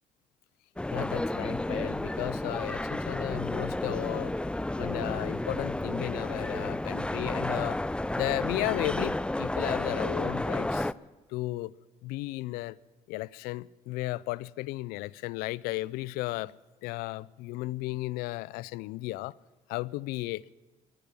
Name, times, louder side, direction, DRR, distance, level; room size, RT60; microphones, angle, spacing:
sound 1, 0.8-10.9, left 1 dB, 5° left, 0.4 m, -31 dB
voice 1, 0.9-4.3 4.8-7.8 8.2-10.9 11.3-11.7 12.0-12.8 13.1-16.5 16.8-19.3 19.7-20.4, left 19 dB, 85° left, 0.4 m, -34 dB
14.5 x 11.0 x 8.3 m
supercardioid pair, 70°, 15 cm